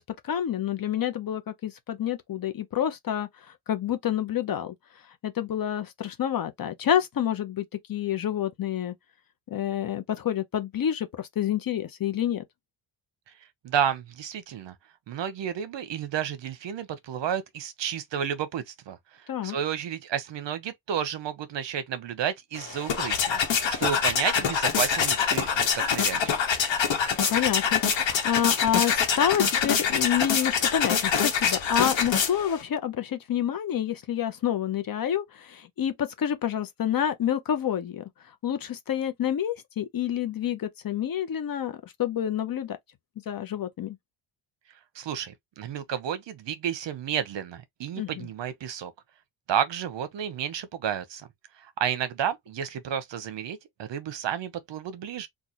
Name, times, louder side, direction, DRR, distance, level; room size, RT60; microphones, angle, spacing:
voice 1, 0.0-3.3 3.7-4.7 5.2-8.9 9.5-12.4 19.3-19.6 27.3-38.0 38.4-42.8 43.3-44.0 47.9-48.3, left 9 dB, 45° left, 0.6 m, -28 dB
voice 2, 13.6-14.7 15.1-19.0 19.4-26.4 44.9-48.9 49.5-51.3 51.6-55.3, right 9 dB, 60° right, 0.8 m, -31 dB
sound 1, 22.5-32.6, left 7 dB, 60° left, 1.1 m, -25 dB
3.9 x 2.4 x 2.9 m
cardioid pair, 145°, 50 cm